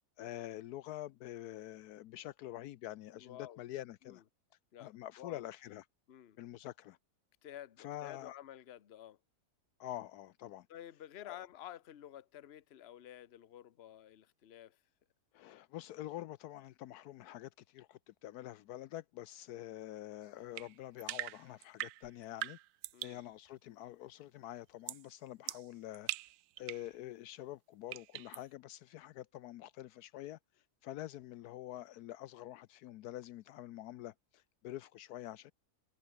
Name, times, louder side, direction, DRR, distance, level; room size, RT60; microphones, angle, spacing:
voice 1, 0.2-4.2 4.8-5.8 6.4-7.0 7.8-8.3 9.8-10.7 11.2-11.4 15.3-22.6 23.0-26.1 26.6-30.4 30.8-35.5, left 14 dB, 75° left, 1.1 m, -46 dB
voice 2, 3.2-3.6 4.0-4.2 4.7-4.9 5.2-5.5 6.1-6.4 7.4-9.2 10.7-14.8 22.9-23.2, left 11 dB, 50° left, 1.0 m, -51 dB
sound 1, 20.6-23.2 24.9-25.1 25.5-26.9 27.9-28.4, right 15 dB, 75° right, 1.0 m, -42 dB
omnidirectional pair, 1.7 m